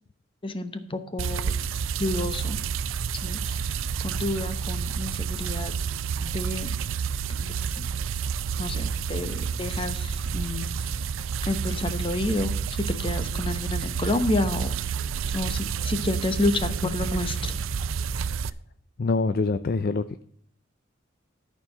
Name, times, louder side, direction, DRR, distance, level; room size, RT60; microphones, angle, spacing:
voice 1, 0.4-1.5 2.0-2.6 3.2-5.7 6.2-6.8 7.3-7.9 8.6-11.0 11.4-14.7 15.3-17.6, left 2 dB, 25° left, 9 dB, 0.9 m, -30 dB
sound 1, 1.2-18.5, right 6 dB, 90° right, 0.5 m, -29 dB
voice 2, 19.0-20.2, left 3 dB, 50° left, 11 dB, 0.4 m, -25 dB
12.5 x 4.6 x 7.2 m, 0.64 s
head